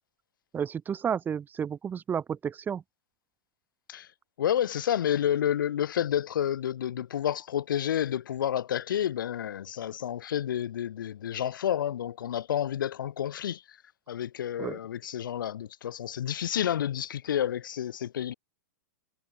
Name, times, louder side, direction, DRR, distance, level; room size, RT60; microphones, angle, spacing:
voice 1, 0.5-2.8 14.6-14.8, right 7 dB, 15° right, 1.4 m, -31 dB
voice 2, 4.4-13.8 14.1-18.3, left 10 dB, 75° left, 3.4 m, -30 dB
hypercardioid pair, 135°, 11 cm